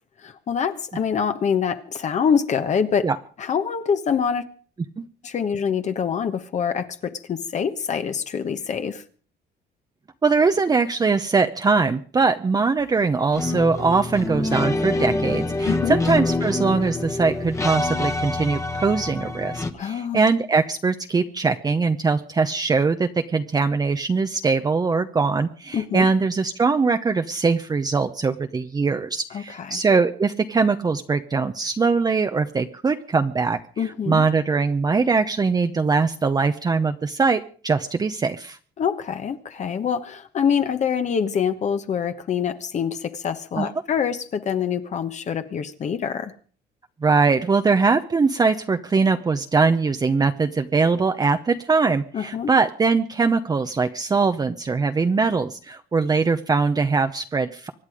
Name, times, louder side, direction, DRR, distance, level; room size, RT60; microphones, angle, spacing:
voice 1, 0.2-3.1 3.4-4.4 5.2-9.0 15.7-16.0 19.7-20.2 25.7-26.1 29.3-29.8 33.8-34.2 38.8-46.3 52.1-52.5, left 7 dB, 45° left, 1.2 m, -25 dB
voice 2, 10.2-38.6 43.6-43.7 47.0-57.7, right 4 dB, 25° right, 0.8 m, -21 dB
sound 1, 13.3-19.7, left 2 dB, 15° left, 1.3 m, -26 dB
25.0 x 9.6 x 5.0 m
cardioid pair, 110°, 17 cm